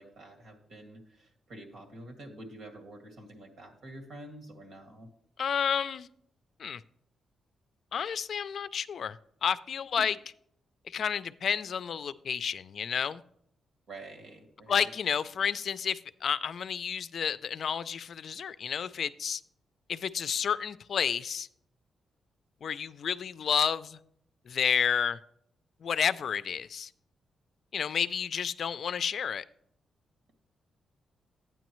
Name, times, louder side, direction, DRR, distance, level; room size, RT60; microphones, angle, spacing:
voice 1, 0.0-5.1 13.9-14.9, right 1 dB, 75° right, 2 dB, 2.0 m, -48 dB
voice 2, 5.4-6.1 6.6-6.8 7.9-9.2 9.4-10.2 10.9-13.2 14.7-19.4 19.9-21.5 22.6-24.0 24.5-25.2 25.8-26.9 27.7-29.4, left 7 dB, 60° left, 14 dB, 0.4 m, -30 dB
12.5 x 9.0 x 3.1 m, 0.70 s
cardioid pair, 120°, 0 cm